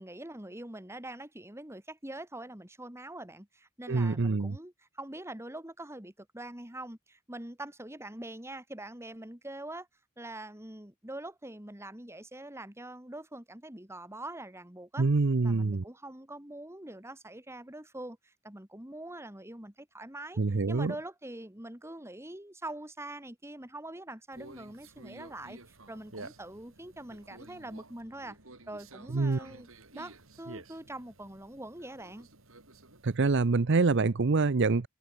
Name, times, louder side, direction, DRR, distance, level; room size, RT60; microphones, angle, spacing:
voice 1, 0.0-9.9 10.2-15.1 15.4-28.4 28.7-32.3, right 1 dB, 15° right, 2.6 m, -44 dB
voice 2, 3.9-4.6 15.0-15.8 20.4-20.9 29.1-29.4 33.0-34.9, right 3 dB, 55° right, 0.7 m, -26 dB
Conversation, 24.3-33.2, right 2 dB, 75° right, 5.1 m, -51 dB
head